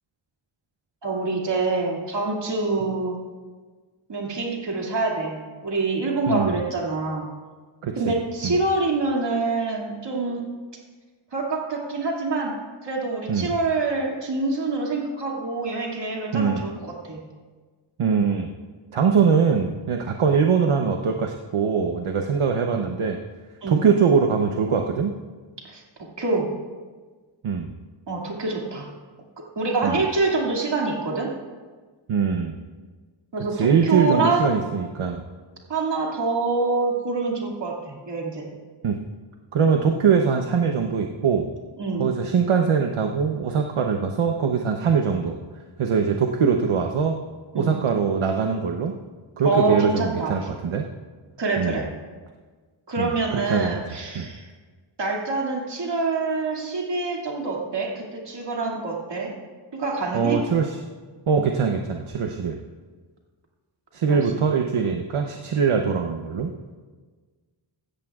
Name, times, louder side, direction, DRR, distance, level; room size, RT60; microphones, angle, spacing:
voice 1, 1.0-3.2 4.1-7.3 8.0-10.5 11.3-12.6 12.8-17.2 23.6-23.8 25.6-25.8 26.2-26.5 28.1-28.9 29.6-31.3 33.3-34.6 35.7-38.5 41.8-42.0 47.5-47.7 49.4-50.4 51.4-51.9 52.9-54.5 55.0-59.3 59.7-60.4 64.1-64.2 64.5-64.6, right 3 dB, 60° right, -2 dB, 2.4 m, -26 dB
voice 2, 6.3-6.6 7.8-8.1 8.4-8.6 13.3-13.5 16.3-16.6 18.0-18.5 18.9-23.2 23.7-25.2 27.4-27.7 29.8-30.0 32.1-32.6 33.5-35.2 38.8-39.0 39.5-41.5 42.0-45.4 45.8-47.2 47.5-48.9 49.4-50.8 51.6-51.8 53.0-53.7 54.1-54.3 60.1-60.8 61.3-62.6 63.9-66.5, right 6 dB, 80° right, 3 dB, 0.9 m, -22 dB
16.5 x 13.5 x 2.4 m, 1.4 s
wide cardioid pair, 100°, 49 cm